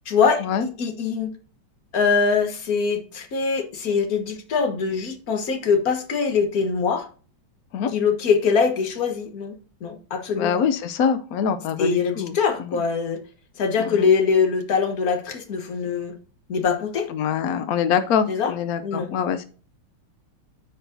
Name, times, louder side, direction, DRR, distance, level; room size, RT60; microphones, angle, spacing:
voice 1, 0.1-0.4 0.8-1.3 1.9-7.1 7.9-9.5 9.8-10.6 11.8-13.2 13.6-16.2 16.5-17.1 18.3-18.5 18.8-19.1, left 5 dB, 50° left, 6 dB, 1.5 m, -23 dB
voice 2, 10.4-12.8 13.8-14.1 17.1-19.5, left 7 dB, 80° left, 9 dB, 0.8 m, -24 dB
13.5 x 4.7 x 2.6 m, 0.39 s
omnidirectional pair, 2.2 m